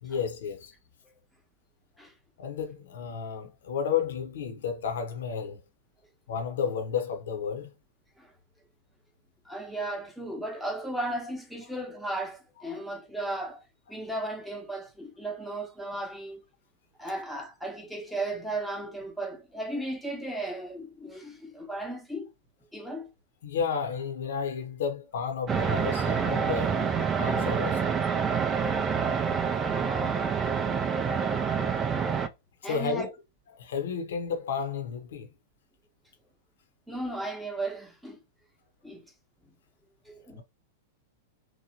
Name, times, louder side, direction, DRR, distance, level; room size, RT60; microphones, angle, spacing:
voice 1, 0.0-0.7 2.4-5.6 6.3-7.7 23.4-28.0 32.6-33.1 33.6-35.3 40.4-40.5, left 6 dB, 70° left, 0.7 m, -32 dB
voice 2, 9.4-16.4 17.0-22.3 22.7-23.1 29.6-30.9 32.6-33.1 36.9-38.2 38.8-39.1 40.1-40.4, right 1 dB, ahead, 0.8 m, -36 dB
sound 1, 25.5-32.3, right 6 dB, 25° right, 0.4 m, -27 dB
2.9 x 2.1 x 2.7 m
hypercardioid pair, 100°, 0 cm